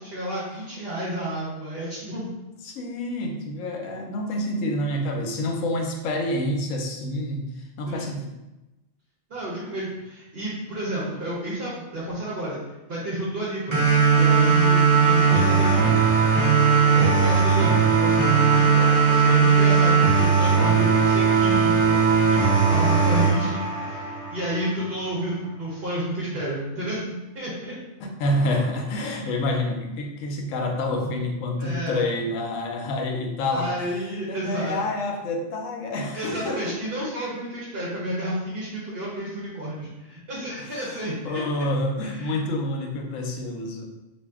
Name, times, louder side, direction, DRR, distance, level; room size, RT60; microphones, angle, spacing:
voice 1, 0.0-2.3 7.8-8.1 9.3-12.6 12.9-15.9 16.9-22.0 22.3-27.8 31.6-32.1 33.5-34.7 36.1-41.7 42.0-42.4, right 1 dB, 50° right, -7 dB, 0.9 m, -31 dB
voice 2, 2.6-8.3 11.0-11.1 28.0-36.8 40.6-43.9, left 1 dB, 85° left, 2 dB, 1.0 m, -28 dB
sound 1, 13.7-24.7, right 5 dB, 25° right, 0.8 m, -18 dB
2.6 x 2.4 x 3.4 m, 1.0 s
omnidirectional pair, 1.3 m